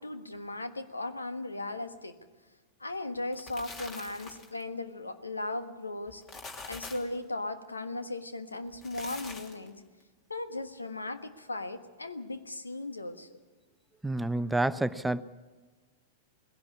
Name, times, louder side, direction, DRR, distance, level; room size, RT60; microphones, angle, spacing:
voice 1, 0.0-2.1 2.8-6.2 6.7-9.8 10.3-13.3, left 2 dB, 85° left, 10 dB, 1.4 m, -37 dB
sound 1, 3.2-4.6 6.1-7.2 8.7-9.7, left 3 dB, 30° left, 2.9 m, -44 dB
voice 2, 14.0-15.2, right 2 dB, 5° right, 14 dB, 0.6 m, -28 dB
20.0 x 16.5 x 8.5 m, 1.3 s
figure-of-eight pair, 95°, 0 cm